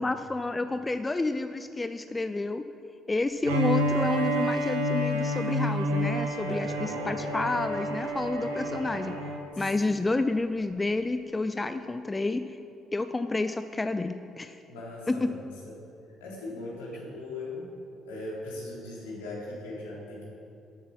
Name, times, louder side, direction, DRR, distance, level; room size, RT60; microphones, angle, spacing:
voice 1, 0.0-2.6 3.1-9.2 9.6-12.6 12.9-14.6 15.1-15.3, left 2 dB, 20° left, 10 dB, 0.5 m, -30 dB
Bowed string instrument, 3.4-9.5, equal, 75° right, 1.3 m, -29 dB
voice 2, 6.5-6.9 9.5-9.6 14.7-15.4 15.6-15.7 16.2-17.7 18.0-20.2, left 2 dB, 75° left, -5 dB, 3.4 m, -39 dB
13.0 x 8.2 x 6.2 m, 2.6 s
figure-of-eight pair, 45°, 0 cm